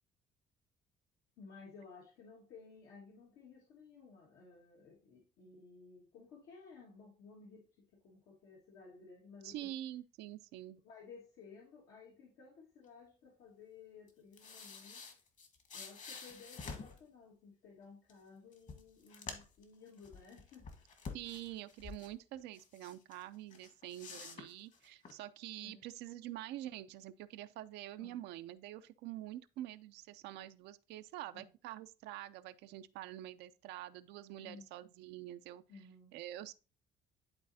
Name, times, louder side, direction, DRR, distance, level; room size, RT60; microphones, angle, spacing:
voice 1, 1.4-9.7 10.8-15.0 15.7-20.7 25.6-25.8 28.0-28.2 31.3-31.5 34.4-34.7 35.7-36.1, left 4 dB, 85° left, 1.8 m, -56 dB
voice 2, 9.4-10.8 21.1-35.6 36.1-36.5, right 14 dB, 85° right, 0.5 m, -46 dB
sound 1, 14.1-17.0 18.1-18.2 18.5-19.6 20.0-22.1 22.5-23.2 23.5-25.1, left 5 dB, 45° left, 1.5 m, -49 dB
11.0 x 4.1 x 2.7 m
cardioid pair, 110°, 17 cm